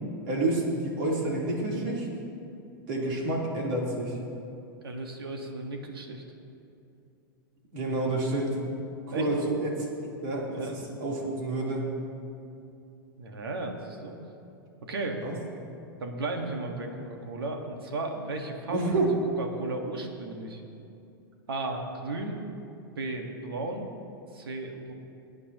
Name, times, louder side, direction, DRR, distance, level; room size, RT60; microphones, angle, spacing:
voice 1, 0.3-2.1 2.9-4.2 7.7-8.6 9.1-9.9 10.2-11.9 15.2-15.3 18.7-19.1, right 2 dB, 65° right, -3 dB, 3.4 m, -29 dB
voice 2, 4.8-6.2 9.1-9.3 10.5-10.7 13.2-14.1 14.8-15.2 16.0-18.9 19.4-20.6 21.5-22.4 23.0-23.9 24.3-24.9, right 2 dB, 85° right, 3 dB, 1.6 m, -35 dB
22.0 x 9.8 x 3.0 m, 2.6 s
hypercardioid pair, 105°, 12 cm